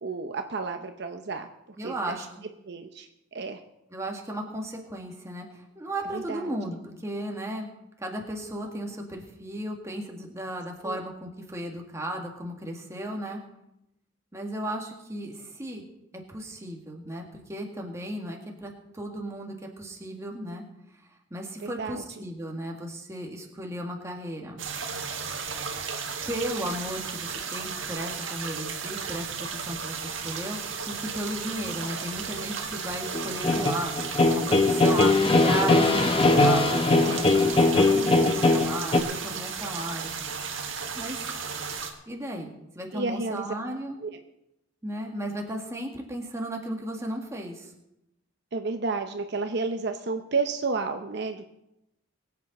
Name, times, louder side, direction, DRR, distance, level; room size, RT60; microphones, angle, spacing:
voice 1, 0.0-1.5 1.8-2.3 2.6-3.6 6.1-6.5 10.8-11.0 21.6-22.2 37.9-38.3 42.9-43.5 44.0-44.1 48.5-51.4, right 4 dB, 60° right, 6 dB, 0.8 m, -31 dB
voice 2, 1.8-2.4 3.9-7.7 8.0-13.4 14.3-15.9 16.3-20.6 21.3-24.6 26.3-30.6 30.9-33.9 34.3-40.1 41.0-41.2 42.1-44.0 44.8-47.7, right 1 dB, 15° right, 1 dB, 1.9 m, -35 dB
sound 1, 24.6-41.9, right 6 dB, 85° right, 1.7 m, -34 dB
sound 2, 33.1-39.0, left 2 dB, 30° left, 0.8 m, -21 dB
22.5 x 8.4 x 4.2 m, 0.87 s
head